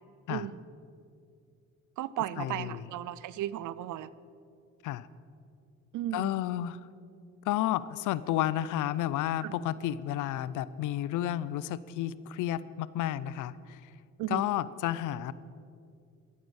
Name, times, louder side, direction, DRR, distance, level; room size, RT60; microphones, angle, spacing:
voice 1, 0.3-0.6 2.0-4.1 5.9-6.4 9.4-9.5 14.2-14.4, right 13 dB, 80° right, 18 dB, 0.6 m, -35 dB
voice 2, 2.4-2.8 4.8-5.1 6.1-6.9 7.4-13.9 14.3-15.3, left 13 dB, 90° left, 18 dB, 0.6 m, -31 dB
13.5 x 9.4 x 8.0 m, 2.4 s
cardioid pair, 90°, 30 cm